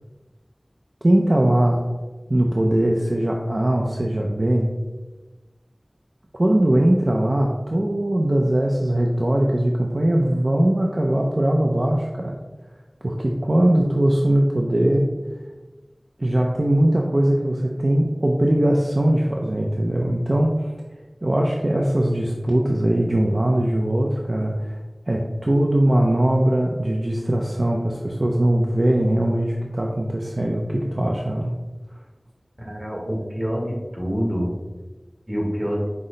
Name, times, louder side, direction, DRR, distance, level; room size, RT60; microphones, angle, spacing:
voice 1, 1.0-1.8 2.3-4.7 6.4-12.4 13.0-15.1 16.2-20.7 21.2-24.8 25.1-31.5, right 1 dB, 50° right, -1 dB, 0.4 m, -20 dB
voice 2, 32.7-34.5 35.3-35.9, equal, 25° right, -2 dB, 1.3 m, -26 dB
5.8 x 2.1 x 3.8 m, 1.2 s
wide cardioid pair, 45°, 0 cm